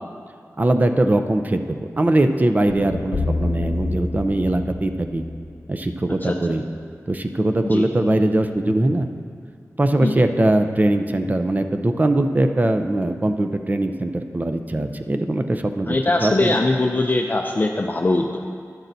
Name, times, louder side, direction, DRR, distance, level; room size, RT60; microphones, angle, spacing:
voice 1, 0.6-5.2 5.7-6.6 7.1-9.1 9.8-16.5, right 1 dB, 30° right, 7 dB, 0.5 m, -21 dB
sound 1, 2.7-6.8, left 2 dB, 80° left, 0.6 m, -28 dB
voice 2, 15.9-18.4, left 2 dB, 35° left, 2 dB, 0.5 m, -21 dB
11.5 x 11.5 x 2.7 m, 2.3 s
wide cardioid pair, 90°, 6 cm